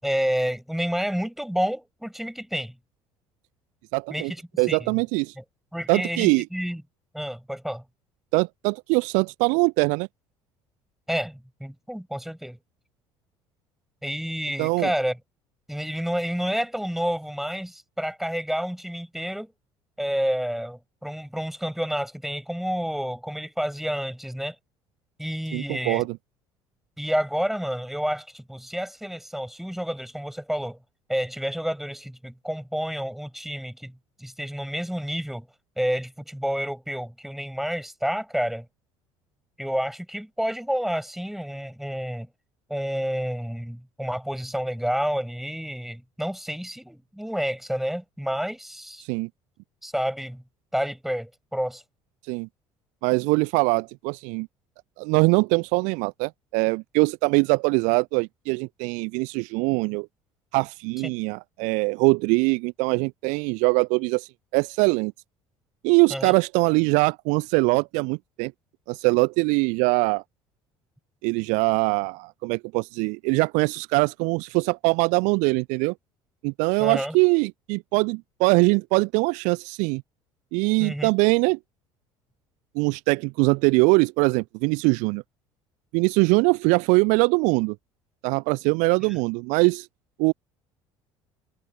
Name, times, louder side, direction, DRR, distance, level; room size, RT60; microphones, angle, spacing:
voice 1, 0.0-2.7 4.1-4.4 4.7-4.8 5.4-5.5 5.7-6.8 7.1-7.8 11.1-12.6 14.0-15.2 15.7-19.5 20.0-24.6 25.2-26.1 27.0-30.8 31.1-33.9 34.2-35.5 35.8-38.7 39.6-42.3 42.7-49.0 49.8-50.4 50.7-51.8 66.1-66.3 76.8-77.2 80.8-81.1 89.0-89.1, equal, ahead, 6.9 m, -29 dB
voice 2, 3.9-4.3 4.6-5.4 5.9-6.4 8.3-10.1 14.6-14.9 25.5-26.2 49.0-49.3 52.2-52.5 53.0-54.5 55.0-60.1 60.5-65.1 65.8-68.5 68.9-70.2 71.2-75.9 76.4-80.0 80.5-81.6 82.7-85.2 85.9-87.8 88.2-89.9 90.2-90.3, right 31 dB, 55° right, 0.5 m, -22 dB
figure-of-eight pair, 60°, 15 cm